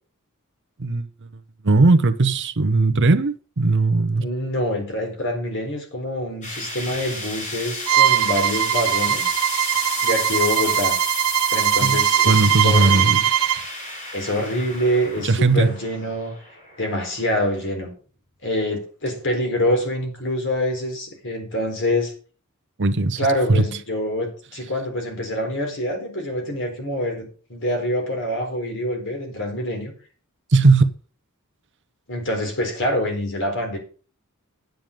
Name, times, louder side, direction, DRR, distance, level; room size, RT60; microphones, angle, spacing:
voice 1, 1.6-4.2 11.8-12.0 12.2-13.2 15.2-15.7 22.8-23.2 23.5-23.6 30.5-30.9, right 3 dB, 55° right, 0.8 m, -18 dB
voice 2, 4.2-9.3 10.0-11.0 11.5-13.2 14.1-16.3 16.8-17.9 18.4-22.1 23.2-29.9 32.1-33.8, left 1 dB, 60° left, 4.0 m, -25 dB
sound 1, 6.4-17.6, left 2 dB, 35° left, 7.3 m, -32 dB
Bowed string instrument, 7.9-13.6, right 11 dB, 85° right, 0.4 m, -20 dB
9.4 x 9.2 x 5.1 m
head